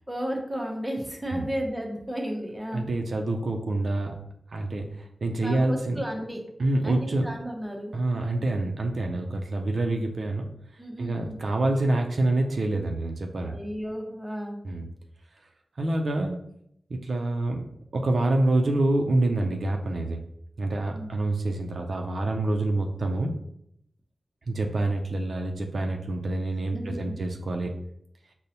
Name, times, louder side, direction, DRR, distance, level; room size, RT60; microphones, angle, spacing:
voice 1, 0.0-2.9 5.4-6.4 6.8-7.9 10.8-11.4 13.4-14.6 20.9-21.1 26.7-27.1, equal, 10° right, 1 dB, 0.6 m, -33 dB
voice 2, 2.7-4.1 4.5-4.9 5.2-6.0 6.6-7.3 7.9-10.5 11.0-13.5 14.6-14.9 15.8-16.4 16.9-17.6 17.9-20.2 20.6-23.3 24.5-27.7, right 2 dB, 65° right, 3 dB, 0.4 m, -26 dB
5.1 x 2.0 x 2.7 m, 0.73 s
wide cardioid pair, 100°, 0 cm